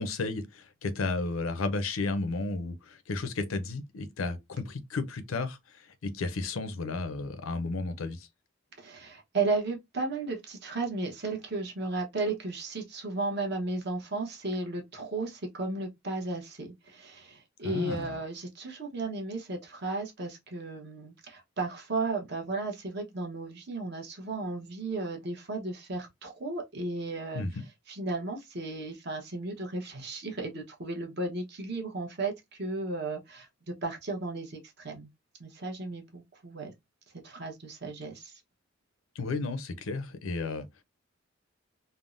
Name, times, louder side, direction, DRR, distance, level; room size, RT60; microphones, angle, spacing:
voice 1, 0.0-8.3 17.6-18.2 27.3-27.6 39.2-40.7, left 3 dB, 85° left, 0.5 m, -33 dB
voice 2, 8.8-27.4 27.9-35.1 35.4-36.7 37.2-38.3, right 3 dB, 55° right, 0.9 m, -34 dB
3.4 x 2.0 x 2.4 m
head